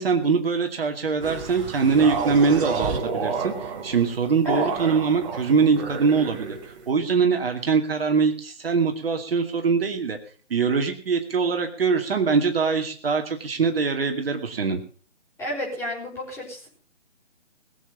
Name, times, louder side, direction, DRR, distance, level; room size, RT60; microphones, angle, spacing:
voice 1, 0.0-3.5 3.8-6.6 6.9-10.2 10.5-14.8, right 5 dB, 50° right, 4 dB, 2.5 m, -23 dB
sound 1, 1.2-6.9, right 5 dB, 25° right, 2.9 m, -30 dB
voice 2, 15.4-16.7, equal, 5° left, -4 dB, 5.7 m, -31 dB
21.0 x 7.4 x 7.2 m, 0.41 s
figure-of-eight pair, 150°, 36 cm